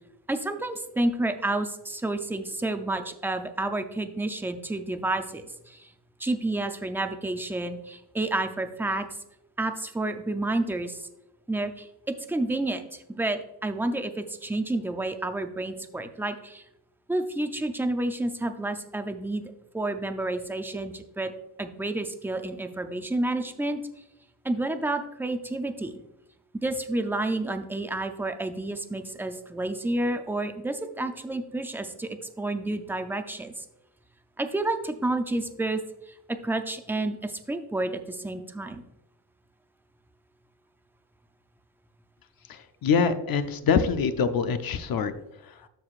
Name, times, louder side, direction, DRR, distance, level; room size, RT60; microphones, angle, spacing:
voice 1, 0.3-5.9 6.2-9.1 9.6-11.1 11.5-16.6 17.1-19.4 19.7-21.3 21.6-23.8 24.4-26.0 26.5-33.7 34.4-35.8 36.1-38.8, right 2 dB, 5° right, 7 dB, 0.4 m, -30 dB
voice 2, 42.8-45.1, left 6 dB, 55° left, 10 dB, 0.6 m, -24 dB
13.0 x 4.8 x 2.4 m, 0.88 s
wide cardioid pair, 170°, 42 cm